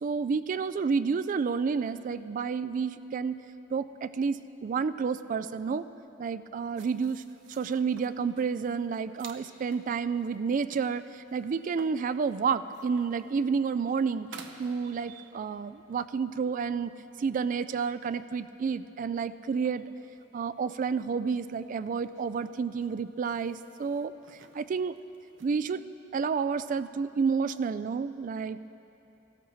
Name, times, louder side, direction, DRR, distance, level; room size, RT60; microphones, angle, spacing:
voice 1, 0.0-3.4 3.7-5.8 6.2-7.2 7.5-16.9 17.2-19.9 20.3-25.0 25.4-25.8 26.1-28.6, right 5 dB, 45° right, 13 dB, 0.3 m, -30 dB
sound 1, 6.8-15.5 16.1-16.2 16.9-17.5 17.9-18.1 18.6-19.2 19.5-25.8, right 5 dB, 80° right, 0.7 m, -55 dB
17.5 x 14.0 x 3.1 m, 3.0 s
head